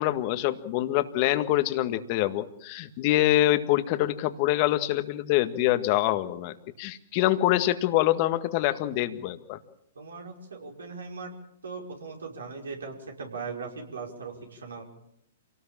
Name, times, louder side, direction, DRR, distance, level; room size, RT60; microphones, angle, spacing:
voice 1, 0.0-9.6, left 15 dB, 40° left, 10 dB, 1.8 m, -25 dB
voice 2, 10.0-11.3 11.6-14.8, right 4 dB, 75° right, 1 dB, 5.5 m, -39 dB
27.5 x 18.5 x 7.4 m, 0.77 s
figure-of-eight pair, 115°, 0 cm